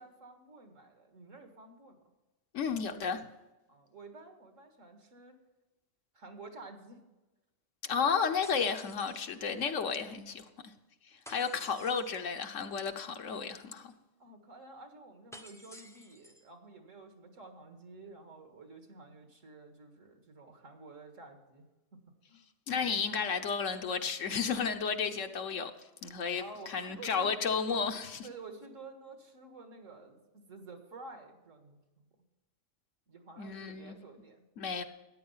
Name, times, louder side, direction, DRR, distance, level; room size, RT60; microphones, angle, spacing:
voice 1, 0.0-2.0 3.7-5.4 6.1-7.0 11.6-11.7 14.2-21.7 21.9-22.0 22.3-22.5 26.4-27.3 28.2-32.1 33.1-34.5, right 3 dB, 65° right, 2.1 m, -51 dB
voice 2, 2.5-3.2 7.8-10.7 11.1-13.9 22.7-25.7 26.0-28.3 33.4-34.0 34.6-34.8, left 6 dB, 65° left, 1.3 m, -33 dB
sound 1, 8.4-9.7 11.2-12.3 15.3-16.5, left 1 dB, 5° left, 0.6 m, -53 dB
14.0 x 9.6 x 5.6 m
omnidirectional pair, 1.4 m